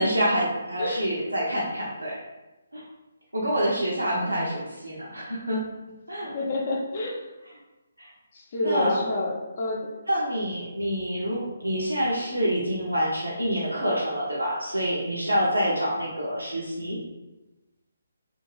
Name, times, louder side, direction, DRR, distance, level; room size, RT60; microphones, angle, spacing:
voice 1, 0.0-2.2 2.7-2.8 3.3-5.6 6.1-6.3 8.0-8.1 8.6-9.0 10.1-17.0, equal, 80° right, -5 dB, 0.7 m, -27 dB
voice 2, 4.1-4.5 6.2-7.2 8.3-9.9, left 2 dB, 40° left, -2 dB, 0.7 m, -29 dB
2.7 x 2.6 x 3.0 m, 1.1 s
figure-of-eight pair, 140°, 0 cm